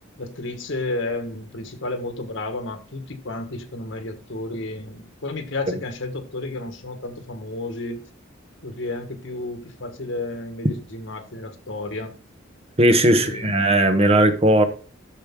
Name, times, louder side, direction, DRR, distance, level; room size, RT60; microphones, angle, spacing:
voice 1, 0.2-8.0 8.6-12.1 13.1-13.7, left 2 dB, 65° left, 1.6 m, -32 dB
voice 2, 12.8-14.6, right 1 dB, 30° right, 1.1 m, -17 dB
13.0 x 5.2 x 3.8 m
head